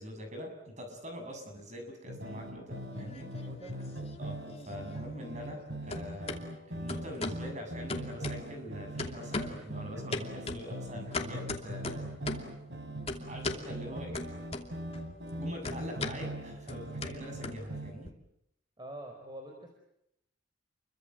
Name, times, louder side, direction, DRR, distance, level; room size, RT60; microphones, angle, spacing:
voice 1, 0.0-3.3 4.2-4.4 4.6-12.1 13.3-14.2 15.4-18.1, equal, 40° right, 4 dB, 7.6 m, -43 dB
sound 1, 2.1-17.9, right 1 dB, 65° right, 5.0 m, -41 dB
sound 2, 2.8-3.7 4.0-5.6 5.9-6.4 6.9-7.5 7.9-8.7 9.0-9.7 10.1-12.6 13.1-13.7 14.1-15.0 15.2-18.1, left 2 dB, 30° left, 2.7 m, -38 dB
voice 2, 3.4-3.8 10.4-10.5 13.9-14.0 18.8-19.8, right 1 dB, 25° right, 2 dB, 4.5 m, -46 dB
30.0 x 24.0 x 7.8 m, 0.80 s
head